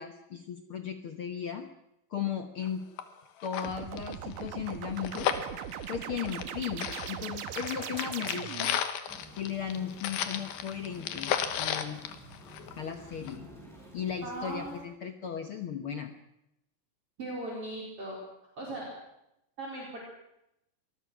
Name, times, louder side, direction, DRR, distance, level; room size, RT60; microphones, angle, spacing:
voice 1, 0.0-1.7 2.1-2.8 3.4-5.4 5.9-8.7 9.3-12.0 12.8-13.5 13.9-16.1, left 8 dB, 75° left, 7 dB, 1.2 m, -36 dB
sound 1, 2.6-2.7 3.0-3.1 3.4-6.5 6.8-12.9 13.3-13.4, left 9 dB, 90° left, 3.2 m, -34 dB
sound 2, 3.6-8.8, right 9 dB, 70° right, 2.7 m, -39 dB
sound 3, 9.1-14.8, right 1 dB, ahead, 7.7 m, -51 dB
voice 2, 14.2-14.7 17.2-18.2 18.6-18.9 19.6-20.0, right 2 dB, 40° right, -3 dB, 5.0 m, -38 dB
25.0 x 20.5 x 6.2 m, 0.84 s
omnidirectional pair, 4.1 m